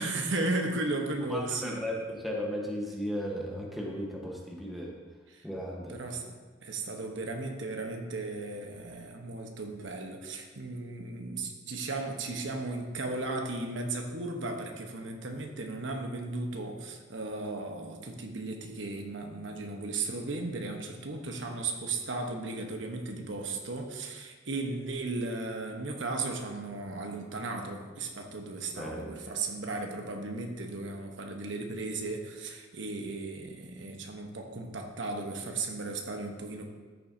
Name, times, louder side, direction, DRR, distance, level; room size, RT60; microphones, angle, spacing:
voice 1, 0.0-2.0 5.3-5.5 5.9-6.4 6.6-36.7, right 2 dB, 80° right, 3 dB, 1.0 m, -35 dB
voice 2, 1.3-4.9 5.4-6.0 28.8-29.1, equal, ahead, -3 dB, 1.1 m, -35 dB
13.0 x 7.3 x 2.7 m, 1.4 s
head